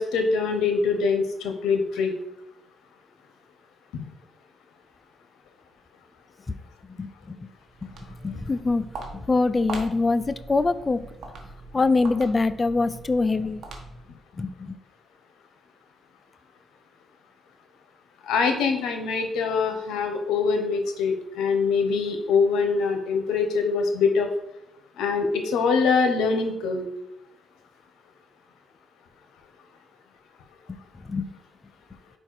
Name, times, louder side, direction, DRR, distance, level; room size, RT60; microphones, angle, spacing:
voice 1, 0.0-2.1 18.2-24.3 25.0-26.9, left 5 dB, 85° left, 6 dB, 0.9 m, -24 dB
voice 2, 7.0-7.5 8.2-8.9 9.1-11.0 11.7-13.6 14.4-14.8 30.7-30.8 31.0-31.3, left 3 dB, 25° left, 14 dB, 0.3 m, -24 dB
Walk footsteps, 7.6-14.2, right 2 dB, 65° right, 1.2 m, -41 dB
4.7 x 4.4 x 4.6 m, 0.83 s
cardioid pair, 90°, 0 cm